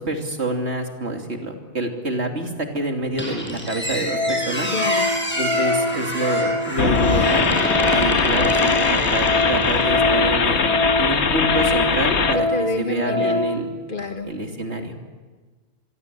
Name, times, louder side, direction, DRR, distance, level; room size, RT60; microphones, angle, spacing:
voice 1, 0.0-4.7 5.4-7.5 7.9-8.8 9.1-12.5 12.8-13.7 14.2-14.9, right 2 dB, 85° right, 3 dB, 3.3 m, -27 dB
Organ, 3.0-3.1 3.6-3.8 4.1-13.6 14.0-14.1, left 2 dB, 60° right, 8.1 m, -25 dB
Squeak, 3.2-10.1, equal, 10° left, 6.6 m, -27 dB
voice 2, 4.7-5.1 12.5-13.4 13.9-14.3, left 3 dB, 50° left, 7 dB, 1.8 m, -28 dB
sound 1, 6.8-12.4, left 5 dB, 90° left, 1.5 m, -21 dB
26.0 x 23.0 x 8.4 m, 1.4 s
omnidirectional pair, 1.1 m